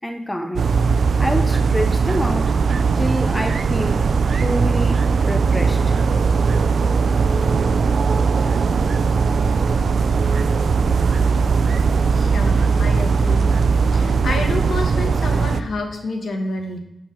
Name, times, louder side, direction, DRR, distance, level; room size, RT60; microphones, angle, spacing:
voice 1, 0.0-0.7 1.2-2.6 3.0-4.0 4.3-6.0, equal, 10° left, 0.5 m, -27 dB
sound 1, 0.6-15.6, right 5 dB, 65° right, 0.3 m, -18 dB
voice 2, 12.1-13.5 13.9-16.8, left 2 dB, 65° left, 1.1 m, -29 dB
7.1 x 6.3 x 3.1 m
wide cardioid pair, 135°, 0 cm